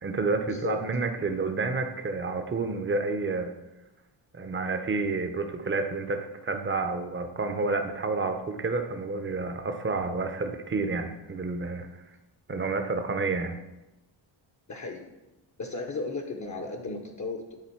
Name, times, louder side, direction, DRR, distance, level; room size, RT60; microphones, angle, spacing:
voice 1, 0.0-3.5 4.3-11.9 12.5-13.6, right 3 dB, 25° right, 7 dB, 0.6 m, -29 dB
voice 2, 14.7-15.1 15.6-17.6, left 3 dB, 35° left, 2 dB, 0.7 m, -35 dB
9.8 x 3.9 x 4.4 m, 0.98 s
wide cardioid pair, 125°, 48 cm